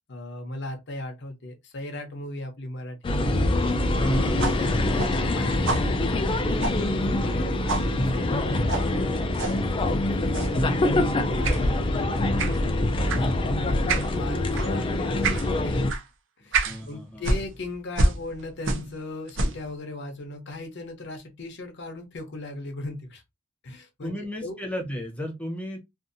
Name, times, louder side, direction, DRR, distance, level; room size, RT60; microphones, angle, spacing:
voice 1, 0.1-3.4 4.3-15.8 16.4-23.2 23.6-24.1 24.4-24.6, left 2 dB, 60° left, 0.7 m, -38 dB
sound 1, 3.0-15.9, left 1 dB, 25° left, 0.3 m, -25 dB
voice 2, 4.0-5.3 10.3-10.8 11.5-11.8 16.4-17.3 24.0-25.8, equal, 5° left, 0.8 m, -35 dB
sound 2, 4.4-7.4 7.7-7.9 8.7-8.9 9.3-9.6 10.3-10.6 11.4-11.6 12.4-12.6 13.1-13.3 13.9-14.1 14.5-14.7 15.2-15.5 15.9-16.0 16.5-16.8 17.2-19.0 19.3-19.7, right 2 dB, 65° right, 0.6 m, -28 dB
2.6 x 2.5 x 2.6 m
head